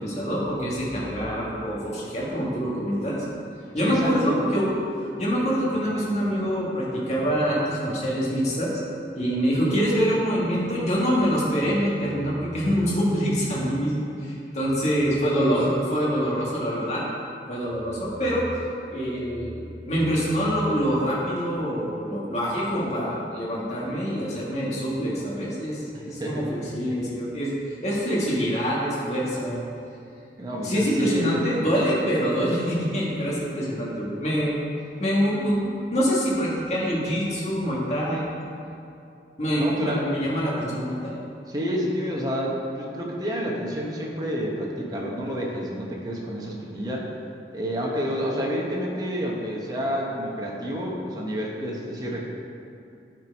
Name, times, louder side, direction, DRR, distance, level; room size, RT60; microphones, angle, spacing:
voice 1, 0.0-3.2 3.7-4.7 5.2-8.7 9.1-17.0 17.5-18.4 18.9-29.6 30.6-34.6 35.0-38.3 39.4-41.2, equal, 40° left, -5 dB, 1.6 m, -25 dB
voice 2, 3.8-4.4 25.9-26.5 30.4-31.7 39.6-40.1 41.5-47.1 47.5-52.2, equal, 20° right, -3 dB, 0.9 m, -29 dB
9.1 x 4.6 x 5.2 m, 2.6 s
head